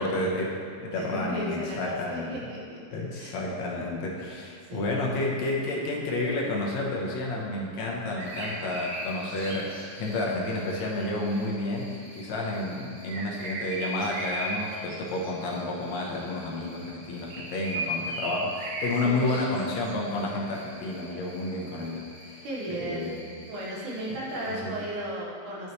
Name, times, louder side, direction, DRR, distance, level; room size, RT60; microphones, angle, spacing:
voice 1, 0.0-2.4 2.9-23.3 24.4-24.7, left 2 dB, 70° left, -2 dB, 2.1 m, -31 dB
voice 2, 0.9-2.8 3.1-3.3 4.6-5.0 19.0-19.4 22.4-23.1 23.5-25.7, right 1 dB, 90° right, -4 dB, 2.8 m, -35 dB
sound 1, 8.1-10.3 13.1-15.0 15.2-15.5 17.3-19.0 19.2-19.9, right 1 dB, 65° right, 2.1 m, -35 dB
Cricket, 8.2-24.5, equal, 25° right, 1.4 m, -50 dB
11.5 x 5.5 x 3.1 m, 2.3 s
omnidirectional pair, 3.4 m